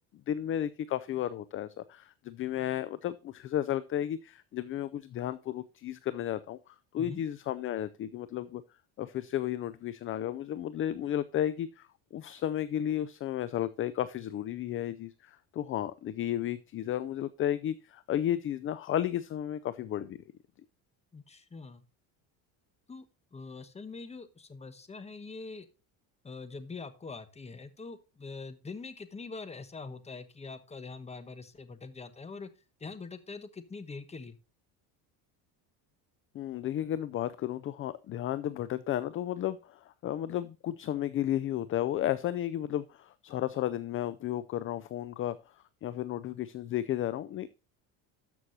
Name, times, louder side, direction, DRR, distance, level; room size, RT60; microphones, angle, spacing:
voice 1, 0.3-8.6 9.0-11.9 12.1-20.2 36.3-47.5, left 11 dB, 30° left, 16 dB, 0.4 m, -33 dB
voice 2, 21.1-21.8 22.9-23.0 23.3-25.7 26.2-32.5 32.8-34.4, left 4 dB, 15° left, 12 dB, 1.1 m, -43 dB
13.0 x 6.2 x 2.7 m, 0.32 s
cardioid pair, 120°, 42 cm